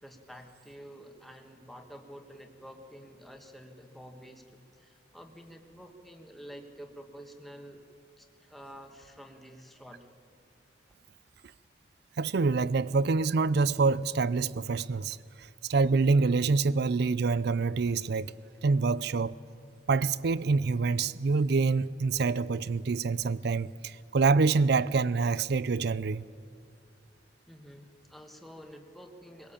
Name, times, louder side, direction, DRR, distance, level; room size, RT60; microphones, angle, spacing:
voice 1, 0.0-7.8 8.2-10.1 27.5-29.5, equal, ahead, 1.6 m, -49 dB
voice 2, 12.2-18.4 18.6-19.4 19.9-26.2, right 4 dB, 60° right, 0.5 m, -26 dB
22.0 x 17.0 x 8.6 m
head